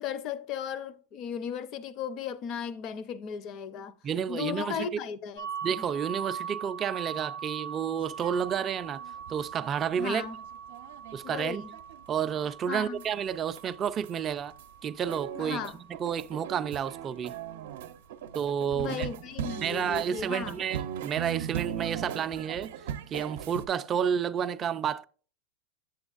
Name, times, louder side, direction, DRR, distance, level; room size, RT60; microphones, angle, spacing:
voice 1, 0.0-3.9 4.3-5.9 10.0-10.4 11.2-11.7 12.7-13.0 15.3-15.8 18.7-20.6, left 8 dB, 40° left, 0.5 m, -36 dB
voice 2, 4.0-4.9 5.6-9.0 9.3-10.2 11.1-11.6 12.1-14.5 14.8-17.4 18.3-19.1 19.6-22.7 23.1-25.0, right 8 dB, 25° right, 0.3 m, -30 dB
sound 1, 5.4-17.1, right 7 dB, 85° left, 1.6 m, -42 dB
sound 2, 8.0-11.2 11.7-13.6 13.9-14.8 15.1-23.7, right 9 dB, 75° right, 0.5 m, -39 dB
7.7 x 7.0 x 2.4 m
supercardioid pair, 150°, 0 cm